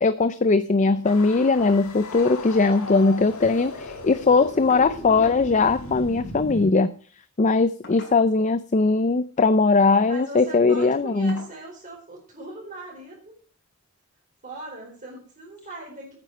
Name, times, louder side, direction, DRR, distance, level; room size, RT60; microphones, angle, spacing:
voice 1, 0.0-6.9 7.4-11.4, left 3 dB, 35° left, 13 dB, 0.5 m, -20 dB
sound 1, 1.1-6.7, left 2 dB, 70° left, 1.7 m, -37 dB
sound 2, 1.7-1.9 2.2-2.4 2.8-2.9 3.1-3.8 4.7-5.4 6.7-6.9 7.8-8.5 9.5-9.8 10.3-10.5 11.3-11.6 12.9-13.0 13.5-13.6, left 2 dB, 50° left, 4.9 m, -46 dB
voice 2, 8.1-8.5 10.0-13.3 14.4-16.2, right 2 dB, 35° right, -1 dB, 4.2 m, -40 dB
9.5 x 8.8 x 6.6 m, 0.41 s
head